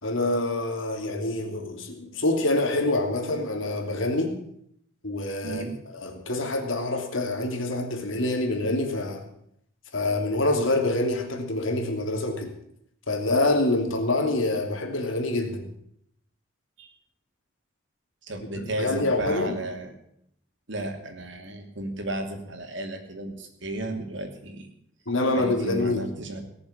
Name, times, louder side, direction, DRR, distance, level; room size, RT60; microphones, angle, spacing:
voice 1, 0.0-4.4 5.0-5.6 5.9-9.2 9.9-12.5 13.1-15.7 18.6-19.5 25.1-26.1, left 2 dB, 80° left, 3 dB, 3.0 m, -26 dB
voice 2, 5.4-5.8 16.8-16.9 18.2-20.0 20.7-24.7 25.3-26.4, right 1 dB, 70° right, 5 dB, 2.9 m, -34 dB
18.5 x 7.1 x 9.9 m, 0.72 s
head